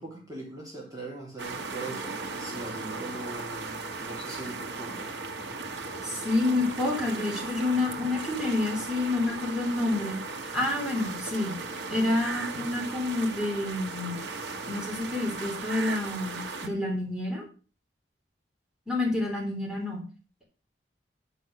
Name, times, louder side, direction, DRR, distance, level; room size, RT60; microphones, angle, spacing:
voice 1, 0.0-5.2, right 2 dB, 20° right, -4 dB, 3.4 m, -40 dB
sound 1, 1.4-16.7, right 3 dB, 85° right, 1.5 m, -37 dB
voice 2, 6.0-10.2 10.5-11.6 11.9-14.2 14.7-17.4 18.9-20.0, left 2 dB, 5° right, -4 dB, 3.8 m, -28 dB
10.5 x 5.6 x 6.4 m, 0.37 s
head